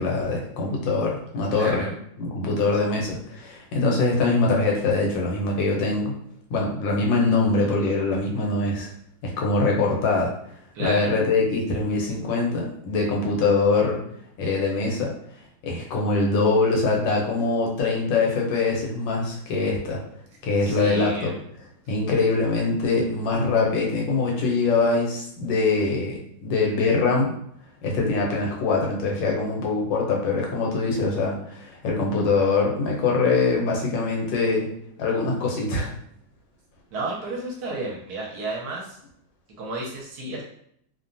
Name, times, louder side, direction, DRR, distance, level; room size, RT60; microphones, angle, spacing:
voice 1, 0.0-1.9 2.2-6.1 6.5-8.9 9.2-10.3 10.8-14.0 14.4-15.1 15.6-20.0 20.4-21.4 21.9-27.3 27.8-34.7 35.0-35.9, left 3 dB, 90° left, -1 dB, 1.4 m, -23 dB
voice 2, 1.5-1.9 10.7-11.1 20.6-21.3 36.9-38.9 39.6-40.4, right 2 dB, 65° right, -2 dB, 1.1 m, -32 dB
3.1 x 2.1 x 2.5 m, 0.69 s
omnidirectional pair, 1.9 m